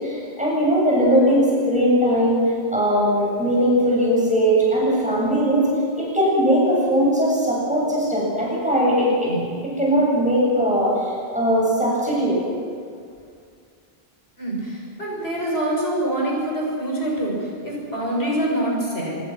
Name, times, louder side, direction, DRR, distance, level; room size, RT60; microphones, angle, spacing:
voice 1, 0.0-5.7 6.0-9.3 9.6-10.9 11.3-12.4, equal, 5° right, -5 dB, 7.8 m, -19 dB
voice 2, 14.4-19.2, right 1 dB, 75° left, -2 dB, 7.4 m, -25 dB
25.5 x 24.0 x 6.1 m, 2.2 s
omnidirectional pair, 1.1 m